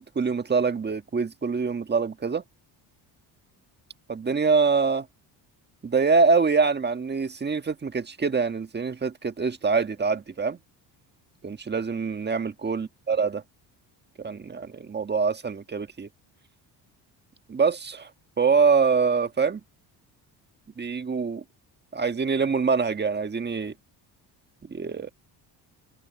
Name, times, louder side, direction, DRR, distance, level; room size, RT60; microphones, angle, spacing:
voice 1, 0.0-2.4 4.1-5.1 5.8-10.6 11.4-13.4 14.2-16.1 17.5-18.1 18.4-19.6 20.8-21.4 21.9-23.7 24.7-25.1, right 5 dB, 25° right, 1.5 m, -24 dB
cardioid pair, 105°, 41 cm